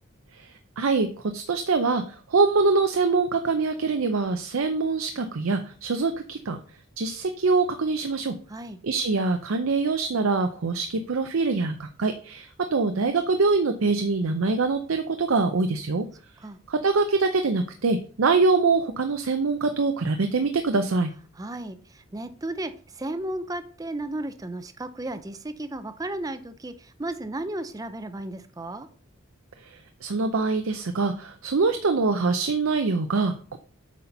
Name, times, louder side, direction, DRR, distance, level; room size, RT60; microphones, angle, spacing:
voice 1, 0.8-1.1 1.3-6.6 7.0-8.3 8.8-16.1 16.7-21.1 29.6-33.6, right 4 dB, 80° right, 7 dB, 0.6 m, -24 dB
voice 2, 21.4-28.9, right 1 dB, 15° right, 10 dB, 0.5 m, -34 dB
8.3 x 4.3 x 5.3 m, 0.43 s
head